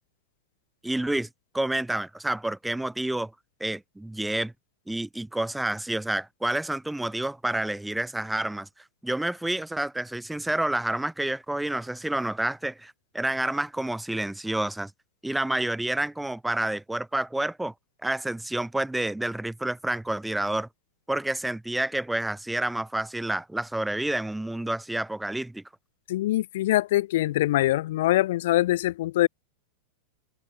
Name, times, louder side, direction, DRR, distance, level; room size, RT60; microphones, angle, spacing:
voice 1, 0.8-1.3 1.5-3.3 3.6-4.5 4.9-8.7 9.0-14.9 15.2-17.7 18.0-20.7 21.1-25.6, right 1 dB, 5° right, 1.1 m, -29 dB
voice 2, 26.1-29.3, left 15 dB, 70° left, 0.4 m, -23 dB
supercardioid pair, 145°, 0 cm